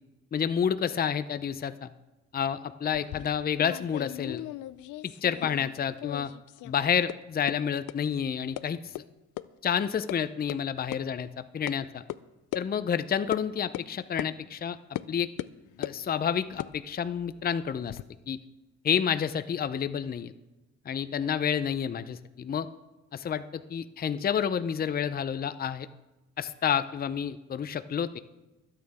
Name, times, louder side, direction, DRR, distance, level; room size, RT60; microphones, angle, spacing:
voice 1, 0.3-1.9 2.3-4.4 5.0-6.3 6.6-8.9 9.6-12.0 12.5-14.8 15.1-15.3 15.8-18.0 18.3-18.4 18.8-20.3 20.9-22.7 23.1-25.9 26.4-28.2, left 8 dB, 30° left, 12 dB, 0.6 m, -29 dB
sound 1, 2.9-5.7 6.0-6.7 7.1-7.2 7.5-7.6 7.9-8.0 8.6-8.7 8.9-9.0 9.4-9.5 9.8-10.2 10.5-10.6 10.9-11.0 11.7-11.8 12.1-12.2 12.5-12.6 13.3-13.4 13.7-13.9 14.2-14.3 14.9-15.1 15.4-16.0 16.5-18.0, left 16 dB, 85° left, 0.5 m, -38 dB
23.0 x 8.9 x 3.5 m, 1.0 s
cardioid pair, 90°, 30 cm